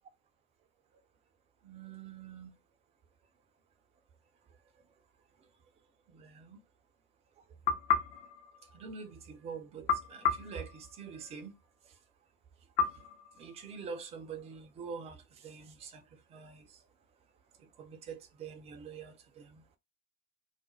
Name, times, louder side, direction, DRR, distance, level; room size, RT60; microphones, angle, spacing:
voice 1, 1.6-2.5 6.1-6.6 8.7-11.5 11.8-11.9 13.3-16.8 17.6-19.6, right 5 dB, 15° right, 0.3 m, -46 dB
sound 1, 7.7-9.3 9.9-11.5 12.8-14.1, left 6 dB, 55° left, 0.7 m, -34 dB
2.4 x 2.1 x 2.8 m
figure-of-eight pair, 75°, 42 cm